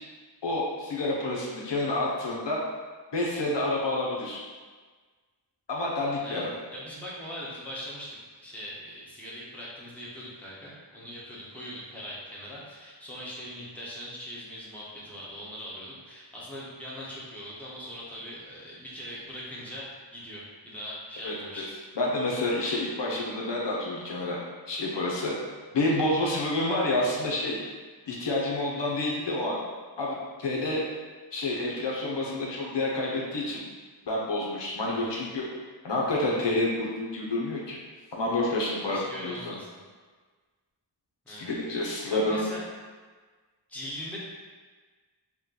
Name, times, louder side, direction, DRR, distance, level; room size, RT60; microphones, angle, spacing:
voice 1, 0.4-2.6 3.1-4.4 5.7-6.5 21.2-21.3 22.0-24.4 24.7-25.3 25.7-27.6 28.1-29.6 30.0-30.9 31.3-33.6 34.1-35.5 35.8-37.8 38.1-39.6 41.3-42.5, left 2 dB, 70° left, -3 dB, 0.8 m, -28 dB
voice 2, 6.7-21.8 34.8-35.1 38.8-39.8 41.2-42.6 43.7-44.2, equal, 5° left, -7 dB, 1.1 m, -41 dB
4.3 x 2.3 x 3.8 m, 1.4 s
wide cardioid pair, 70°, 44 cm